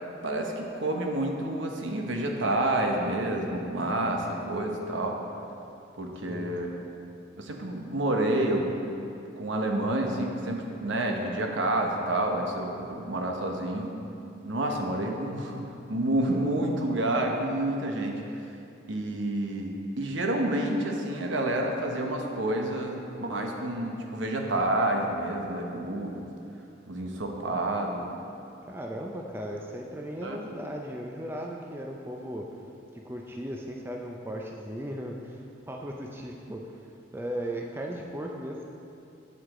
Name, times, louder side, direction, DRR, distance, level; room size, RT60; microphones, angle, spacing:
voice 1, 0.2-5.2 6.0-6.7 7.4-8.7 9.1-13.9 14.4-15.6 15.9-18.2 18.9-26.3 26.9-28.2 30.2-30.4, right 1 dB, 75° right, 2 dB, 0.9 m, -29 dB
voice 2, 28.7-32.5 32.9-35.4 35.7-36.6 37.1-38.7, equal, 10° right, 0 dB, 0.4 m, -36 dB
8.3 x 7.8 x 3.7 m, 2.6 s
head